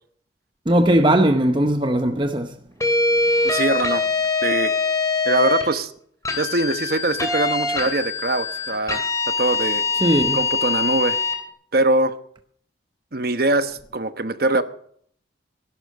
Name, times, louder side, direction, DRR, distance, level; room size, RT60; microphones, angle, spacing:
voice 1, 0.7-2.6 10.0-10.4, right 1 dB, 25° right, 0.8 m, -18 dB
sound 1, 2.8-5.7 6.2-11.4, left 4 dB, 15° left, 2.7 m, -23 dB
voice 2, 3.4-4.0 4.4-4.7 5.2-5.9 6.4-9.8 10.3-11.2 11.7-12.2 13.1-14.6, right 2 dB, 50° right, 1.1 m, -22 dB
17.0 x 11.5 x 6.5 m
head